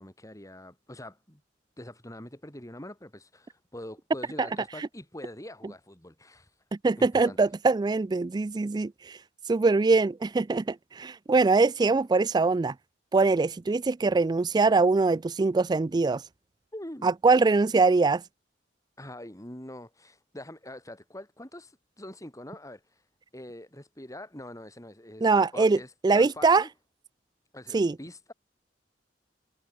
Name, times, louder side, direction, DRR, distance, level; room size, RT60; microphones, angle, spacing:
voice 1, 0.0-1.4 1.8-6.6 7.0-7.4 16.7-17.1 19.0-23.1 23.3-26.7 27.5-28.3, left 1 dB, 20° left, 5.9 m, -44 dB
voice 2, 6.8-9.2 9.5-12.7 13.1-16.2 17.0-18.2 25.2-25.8 26.0-26.6 27.7-27.9, right 3 dB, 25° right, 0.3 m, -23 dB
head